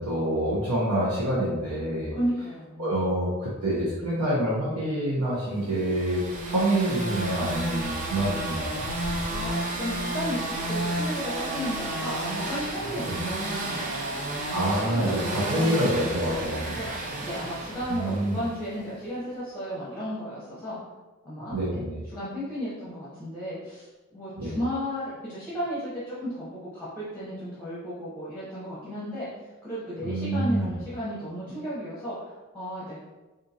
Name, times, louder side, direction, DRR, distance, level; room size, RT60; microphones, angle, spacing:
voice 1, 0.0-2.2 2.8-8.8 13.1-13.2 14.5-16.8 17.9-18.4 21.5-22.0 24.4-24.5 30.0-30.7, right 1 dB, 80° right, -9 dB, 0.9 m, -27 dB
voice 2, 2.1-3.1 9.3-14.0 14.9-15.7 16.3-16.9 17.2-20.8 21.2-23.9 24.1-29.3 29.6-33.0, equal, 10° left, -10 dB, 0.8 m, -34 dB
sound 1, 5.7-18.7, right 1 dB, 35° right, 0.5 m, -32 dB
3.7 x 2.6 x 2.8 m, 1.2 s
head